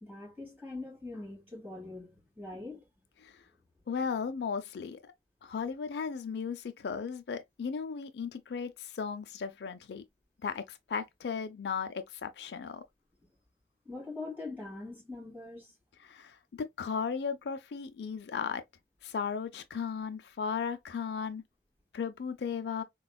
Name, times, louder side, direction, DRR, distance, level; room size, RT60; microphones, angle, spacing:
voice 1, 0.0-2.9 13.8-15.7, left 2 dB, 10° right, 2.4 m, -43 dB
voice 2, 3.9-5.0 5.4-10.0 10.4-12.8 16.0-18.6 19.0-21.4 21.9-22.8, left 6 dB, 70° left, 0.4 m, -36 dB
4.1 x 2.3 x 2.2 m
head